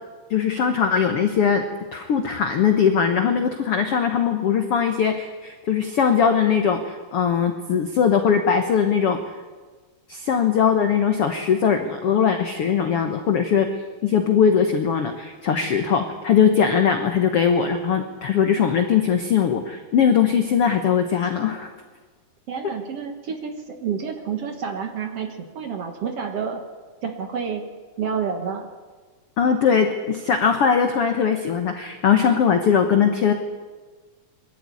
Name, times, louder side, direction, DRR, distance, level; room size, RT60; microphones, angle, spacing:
voice 1, 0.3-1.6 1.9-9.2 10.1-13.7 14.0-21.7 29.4-33.3, left 7 dB, 90° left, 6 dB, 1.3 m, -20 dB
voice 2, 22.5-26.6 27.0-27.6 28.0-28.7, right 6 dB, 60° right, 6 dB, 1.7 m, -29 dB
22.5 x 13.5 x 9.7 m, 1.4 s
omnidirectional pair, 4.5 m